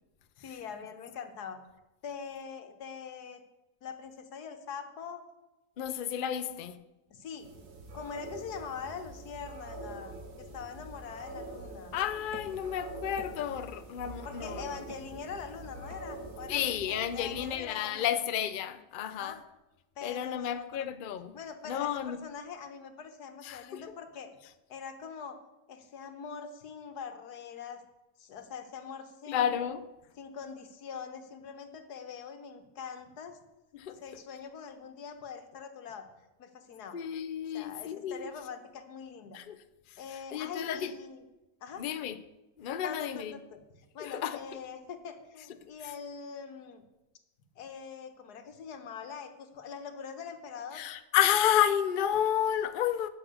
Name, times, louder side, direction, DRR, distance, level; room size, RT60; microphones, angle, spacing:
voice 1, 0.4-1.6 2.0-3.4 3.8-5.2 6.4-6.7 7.1-7.5 7.9-12.0 14.2-18.1 19.0-19.4 20.0-20.9 21.3-24.3 24.7-25.4 25.7-27.8 28.2-29.6 30.2-33.4 33.9-36.1 36.4-37.0 37.5-39.4 40.0-41.2 41.6-41.8 42.8-46.8 47.6-50.8, left 6 dB, 85° left, 1.7 m, -43 dB
voice 2, 5.8-6.8 11.9-14.7 16.5-19.4 20.0-21.4 21.7-22.2 23.4-23.8 29.3-29.8 33.7-34.0 36.9-38.2 39.3-39.6 40.3-40.9 41.8-42.2 42.6-43.4 44.0-44.6 50.7-53.1, left 10 dB, 55° left, 0.6 m, -31 dB
sound 1, 7.4-17.5, right 2 dB, 85° right, 2.1 m, -45 dB
10.0 x 6.4 x 8.0 m
omnidirectional pair, 1.7 m